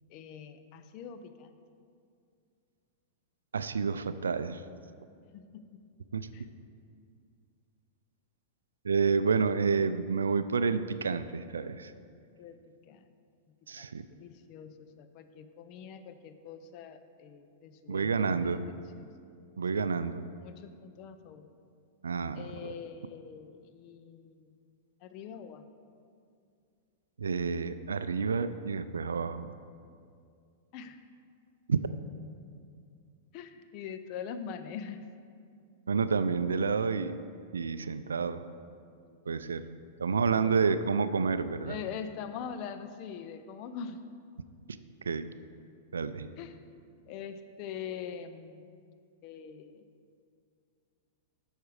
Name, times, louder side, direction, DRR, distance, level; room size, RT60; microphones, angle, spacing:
voice 1, 0.1-1.6 5.3-5.6 6.3-6.5 12.4-13.1 13.8-19.1 19.7-19.9 20.4-21.5 22.3-24.6 25.0-25.6 30.7-31.0 33.3-35.1 39.0-39.3 40.4-40.6 41.7-44.0 46.4-48.9 49.2-49.9, left 7 dB, 50° left, 10 dB, 0.6 m, -44 dB
voice 2, 3.5-4.6 6.1-6.3 8.8-11.9 13.7-14.0 17.9-18.7 19.6-20.3 22.0-22.7 27.2-29.6 31.7-31.8 35.9-37.2 37.5-38.4 39.3-39.7 40.0-41.8 44.7-44.8 45.1-45.3 45.9-46.3, right 5 dB, 90° right, 13 dB, 0.3 m, -29 dB
8.3 x 6.4 x 4.9 m, 2.3 s
hypercardioid pair, 110°, 0 cm